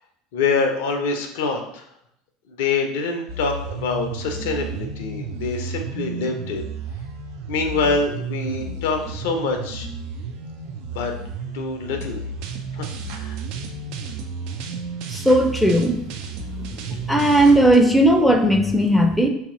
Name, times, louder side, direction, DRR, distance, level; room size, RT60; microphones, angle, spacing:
voice 1, 0.3-1.8 2.5-6.6 7.5-9.9 10.9-11.1 11.5-12.2 12.7-13.4, left 4 dB, 65° left, 5 dB, 0.5 m, -25 dB
sound 1, 3.3-17.8, right 4 dB, 60° right, 0.4 m, -32 dB
voice 2, 15.1-16.0 17.1-19.3, right 1 dB, 5° left, 5 dB, 0.5 m, -16 dB
2.9 x 2.8 x 3.7 m, 0.74 s
figure-of-eight pair, 70°, 0 cm